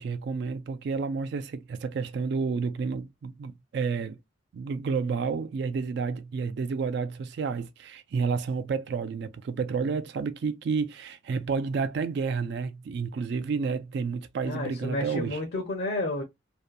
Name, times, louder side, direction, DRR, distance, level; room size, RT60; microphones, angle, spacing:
voice 1, 0.0-4.2 4.5-15.4, right 5 dB, 60° right, 0.3 m, -30 dB
voice 2, 14.4-16.2, left 2 dB, 55° left, 0.6 m, -31 dB
2.6 x 2.2 x 2.3 m
head